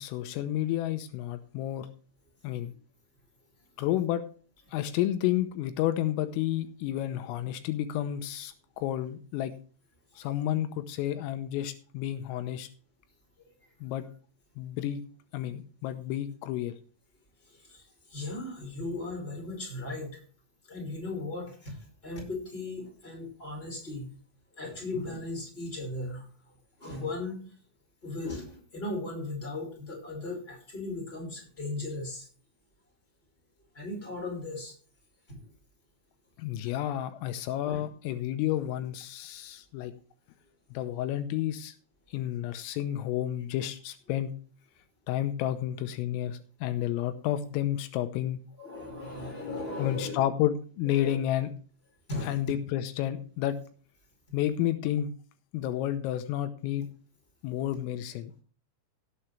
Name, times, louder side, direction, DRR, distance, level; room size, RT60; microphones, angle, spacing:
voice 1, 0.0-1.9 2.4-2.7 3.8-4.2 4.7-9.5 10.2-12.7 13.8-14.1 14.6-15.0 15.3-16.8 36.4-39.9 40.7-41.7 42.1-44.3 45.1-48.4 49.8-51.5 52.2-53.6 54.3-55.1 55.5-56.9 57.4-58.3, left 12 dB, 85° left, 10 dB, 3.5 m, -31 dB
voice 2, 17.6-20.2 20.7-24.1 24.5-26.3 26.8-27.4 28.0-32.3 33.7-34.7 35.3-35.4 37.6-37.8 48.6-50.2 50.8-51.2 52.1-52.5, left 2 dB, 10° left, 0 dB, 4.6 m, -37 dB
17.0 x 8.0 x 3.3 m, 0.40 s
omnidirectional pair, 5.9 m